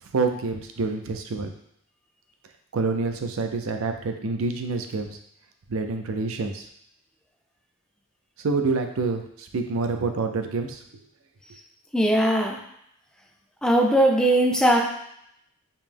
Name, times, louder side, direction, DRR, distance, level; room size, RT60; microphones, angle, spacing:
voice 1, 0.1-1.5 2.7-5.2 5.7-6.7 8.4-10.8, right 3 dB, 70° right, 6 dB, 0.5 m, -27 dB
voice 2, 11.9-12.6 13.6-14.8, right 1 dB, 5° left, 0 dB, 0.4 m, -19 dB
5.3 x 2.1 x 3.4 m, 0.72 s
head